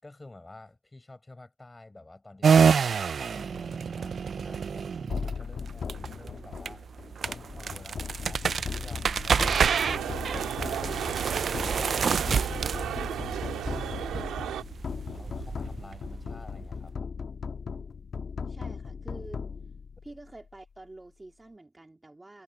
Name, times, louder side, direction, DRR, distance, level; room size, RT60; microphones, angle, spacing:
voice 1, 0.0-2.6 3.1-6.9 7.2-9.9 10.4-14.5 15.1-17.2, left 2 dB, 15° left, 6.9 m, -50 dB
sound 1, 2.4-16.7, right 6 dB, 45° right, 0.4 m, -28 dB
sound 2, 5.1-20.4, left 5 dB, 45° left, 1.5 m, -38 dB
sound 3, 9.4-14.6, right 10 dB, 80° right, 1.7 m, -35 dB
voice 2, 18.5-19.4 20.0-22.4, right 2 dB, 15° right, 3.6 m, -48 dB
cardioid pair, 90°, 0 cm